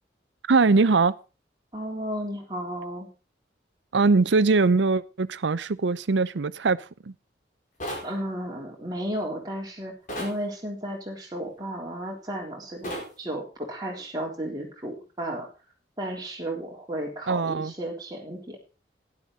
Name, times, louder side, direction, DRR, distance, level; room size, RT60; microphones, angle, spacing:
voice 1, 0.5-1.2 3.9-7.1 17.3-17.7, right 4 dB, 90° right, 0.6 m, -22 dB
voice 2, 1.7-3.1 8.0-15.5 16.0-18.6, right 1 dB, 20° right, 3.6 m, -33 dB
sound 1, 7.8-8.1 10.1-10.4 12.8-13.1, equal, 45° left, 5.0 m, -33 dB
12.0 x 11.0 x 4.0 m
head